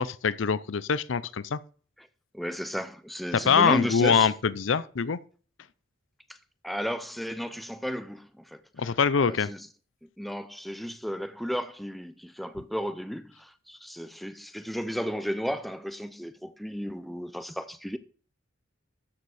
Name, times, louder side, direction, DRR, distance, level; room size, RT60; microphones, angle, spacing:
voice 1, 0.0-1.6 3.5-5.2 8.8-9.5, left 6 dB, 70° left, 0.6 m, -24 dB
voice 2, 2.3-4.3 6.3-6.4 6.6-9.7 10.0-18.0, equal, ahead, 0.5 m, -34 dB
13.0 x 6.8 x 4.9 m
head